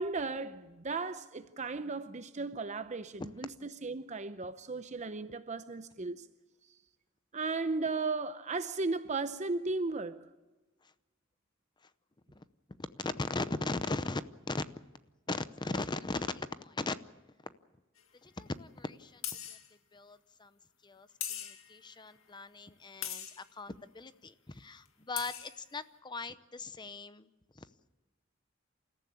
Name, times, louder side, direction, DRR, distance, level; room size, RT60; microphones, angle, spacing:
voice 1, 0.0-6.3 6.7-6.8 7.3-10.3, right 3 dB, 35° right, 0.7 m, -36 dB
voice 2, 12.9-14.2 14.5-14.6 15.3-16.9 17.4-17.5 18.2-19.2 19.5-19.6 19.9-20.5 20.8-27.3 27.6-27.7, left 3 dB, 20° left, 0.7 m, -38 dB
sound 1, 18.0-18.1 19.2-19.7 21.2-21.8 23.0-23.4 24.9-25.0 25.2-25.6, left 10 dB, 80° left, 2.0 m, -40 dB
28.0 x 14.5 x 8.4 m
head